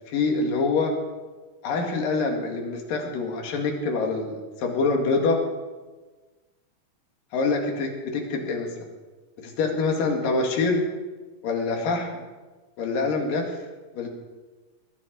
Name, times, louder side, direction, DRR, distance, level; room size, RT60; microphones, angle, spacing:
voice 1, 0.1-0.9 1.6-5.4 7.3-8.7 9.4-10.9 11.4-12.1 12.8-13.6 13.9-14.1, left 3 dB, 80° left, 2 dB, 3.8 m, -25 dB
20.0 x 11.0 x 5.3 m, 1.3 s
omnidirectional pair, 3.8 m